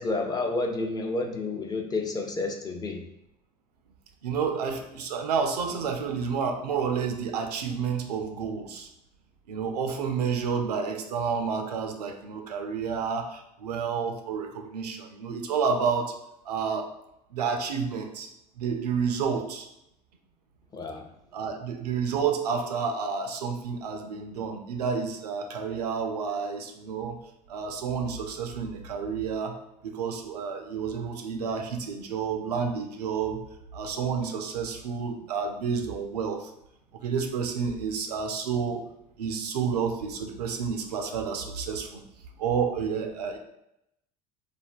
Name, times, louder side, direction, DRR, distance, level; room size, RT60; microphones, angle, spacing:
voice 1, 0.0-3.0 20.7-21.1, left 3 dB, 20° left, 3 dB, 0.4 m, -30 dB
voice 2, 4.2-8.9 9.5-16.1 16.5-16.9 17.3-18.3 18.6-19.7 21.3-27.2 27.5-33.4 33.7-36.5 37.0-38.8 39.2-42.0 42.4-43.4, right 6 dB, 80° right, 4 dB, 0.4 m, -30 dB
3.3 x 2.1 x 2.4 m, 0.81 s
figure-of-eight pair, 65°, 20 cm